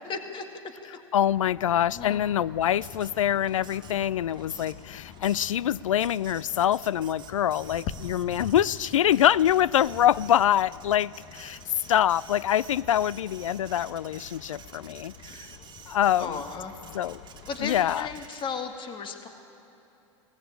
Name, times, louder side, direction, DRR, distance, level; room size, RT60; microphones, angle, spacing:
voice 1, 0.1-0.5 1.9-2.3 14.8-15.0 15.6-15.7 16.2-16.7 17.5-19.3, left 5 dB, 30° left, 5 dB, 2.1 m, -35 dB
voice 2, 1.1-11.6 11.9-15.5 15.9-16.4 16.9-17.2 17.6-18.1, left 11 dB, 80° left, 22 dB, 0.4 m, -25 dB
sound 1, 1.3-18.3, left 9 dB, 45° left, 1.0 m, -46 dB
Printer, 2.6-18.7, right 8 dB, 25° right, 2.0 m, -50 dB
22.0 x 18.0 x 8.9 m, 2.9 s
hypercardioid pair, 95°, 17 cm